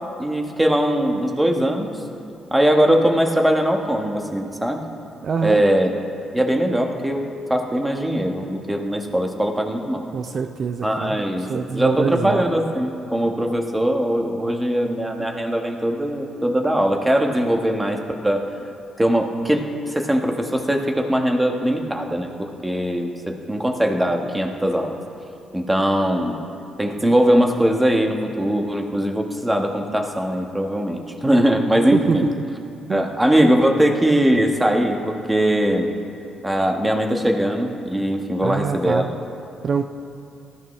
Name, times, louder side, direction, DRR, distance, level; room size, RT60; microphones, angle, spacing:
voice 1, 0.2-2.0 2.5-4.8 5.4-5.9 6.3-10.1 10.8-18.4 19.0-25.0 25.5-26.4 26.8-32.3 32.9-35.9 36.4-39.1, right 1 dB, 10° right, 3 dB, 1.4 m, -21 dB
voice 2, 5.2-5.6 10.1-12.4 31.9-32.3 32.9-33.1 38.4-39.1 39.6-39.9, right 6 dB, 50° right, 7 dB, 0.5 m, -24 dB
19.0 x 14.0 x 3.3 m, 2.6 s
cardioid pair, 90°, 0 cm